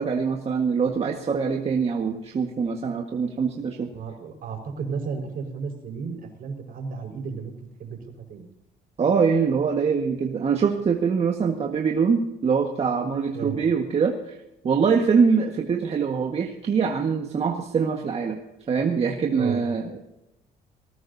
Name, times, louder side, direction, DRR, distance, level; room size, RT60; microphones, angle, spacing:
voice 1, 0.0-3.9 9.0-14.4 14.6-18.4 18.7-20.0, right 5 dB, 35° right, 2 dB, 1.7 m, -23 dB
voice 2, 3.9-7.5 7.8-8.0 8.3-8.5 13.3-13.6 19.4-19.6, right 5 dB, 55° right, 3 dB, 5.3 m, -33 dB
20.0 x 18.5 x 2.8 m, 0.89 s
cardioid pair, 110°, 17 cm